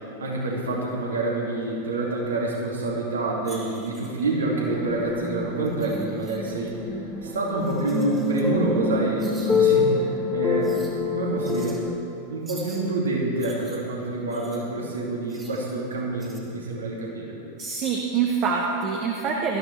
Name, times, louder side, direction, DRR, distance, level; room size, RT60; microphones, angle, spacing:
voice 1, 0.0-10.7 11.1-11.8 12.3-17.4, right 2 dB, 70° right, -3 dB, 2.6 m, -27 dB
sound 1, 3.4-4.2 5.6-6.7 7.6-8.5 9.2-9.8 10.6-10.9 11.4-11.8 12.5-12.8 13.4-14.6 15.3-15.7 16.2-16.4, right 3 dB, 15° right, 2.6 m, -47 dB
sound 2, 4.7-11.9, left 4 dB, 5° left, 1.0 m, -26 dB
voice 2, 17.6-19.6, right 6 dB, 35° right, -1 dB, 1.3 m, -25 dB
18.5 x 13.5 x 3.5 m, 2.7 s
figure-of-eight pair, 90°, 0 cm